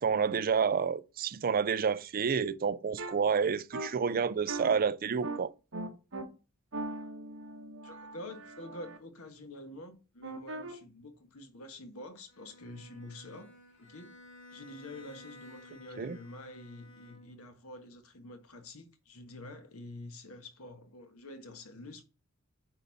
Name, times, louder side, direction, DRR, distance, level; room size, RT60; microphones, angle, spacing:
voice 1, 0.0-5.5 16.0-16.2, right 6 dB, 40° right, 0.4 m, -29 dB
sound 1, 3.0-3.1 3.7-3.9 4.5-4.7 5.2-5.4 5.7-6.2 6.7-9.0 10.2-10.7, right 2 dB, 60° right, 1.3 m, -39 dB
voice 2, 7.8-13.5 13.8-14.1 14.5-22.0, left 1 dB, 80° left, 1.5 m, -47 dB
Bowed string instrument, 12.3-17.6, left 2 dB, 60° left, 2.5 m, -54 dB
9.1 x 4.1 x 4.1 m
head